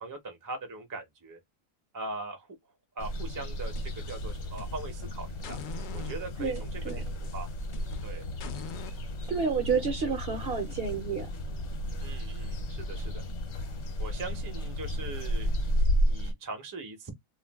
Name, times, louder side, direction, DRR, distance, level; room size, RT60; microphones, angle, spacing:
voice 1, 0.0-1.4 1.9-2.5 3.0-5.6 5.9-7.0 7.3-7.5 8.0-8.3 12.0-13.2 14.0-17.1, right 3 dB, 25° right, 0.5 m, -41 dB
sound 1, 3.0-16.3, equal, 60° left, 1.0 m, -33 dB
sound 2, 3.6-5.0 5.4-9.0, left 7 dB, 80° left, 0.4 m, -45 dB
voice 2, 6.4-7.0 9.3-11.3, right 5 dB, 60° right, 0.7 m, -30 dB
2.5 x 2.2 x 3.3 m
omnidirectional pair, 1.4 m